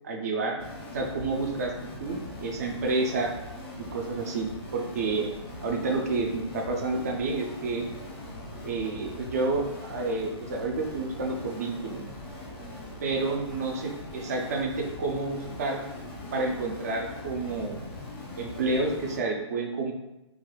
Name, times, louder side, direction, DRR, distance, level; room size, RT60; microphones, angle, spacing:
voice 1, 0.0-0.6 0.9-1.7 2.0-3.3 3.9-5.3 5.6-7.9 8.6-12.0 13.0-15.8 16.3-17.8 18.4-19.9, right 3 dB, 35° right, 1 dB, 0.3 m, -29 dB
sound 1, 0.6-19.2, left 1 dB, 25° left, 0.5 m, -41 dB
2.4 x 2.3 x 3.0 m, 0.95 s
hypercardioid pair, 165°, 15 cm